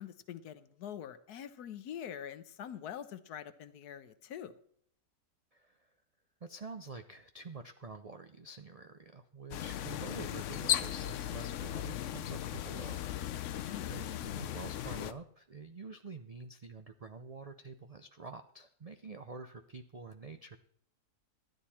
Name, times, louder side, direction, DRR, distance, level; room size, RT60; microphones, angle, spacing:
voice 1, 0.0-4.5 13.7-14.0, left 9 dB, 80° left, 13 dB, 1.3 m, -45 dB
voice 2, 5.5-5.9 6.4-13.0 13.3-20.6, right 4 dB, 80° right, 8 dB, 0.3 m, -48 dB
sound 1, 9.5-15.1, left 11 dB, 65° left, 0.8 m, -36 dB
13.0 x 10.0 x 4.3 m, 0.64 s
omnidirectional pair, 1.6 m